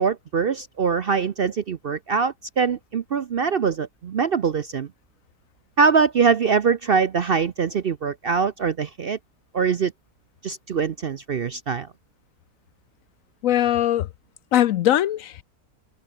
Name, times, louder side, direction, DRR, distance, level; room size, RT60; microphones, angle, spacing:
voice 1, 0.0-4.9 5.8-9.2 9.5-9.9 10.4-11.9, right 5 dB, 55° right, 0.7 m, -23 dB
voice 2, 13.4-14.1 14.5-15.4, left 12 dB, 70° left, 0.9 m, -20 dB
omnidirectional pair, 1.6 m